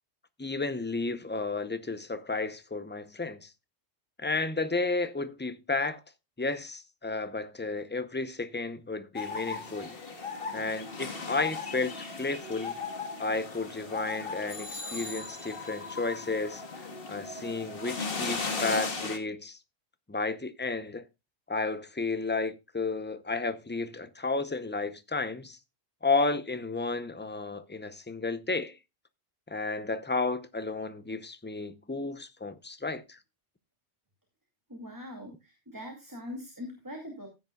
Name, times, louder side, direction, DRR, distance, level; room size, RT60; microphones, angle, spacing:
voice 1, 0.4-3.5 4.2-6.0 6.4-10.0 10.5-12.8 13.2-16.6 17.1-19.6 20.1-21.0 21.5-25.6 26.0-28.8 29.5-33.2, left 3 dB, 15° left, 0.5 m, -32 dB
sound 1, 9.1-19.2, left 4 dB, 55° left, 1.6 m, -37 dB
voice 2, 34.7-37.3, left 1 dB, 15° right, 2.4 m, -42 dB
15.0 x 9.4 x 2.3 m
omnidirectional pair, 1.2 m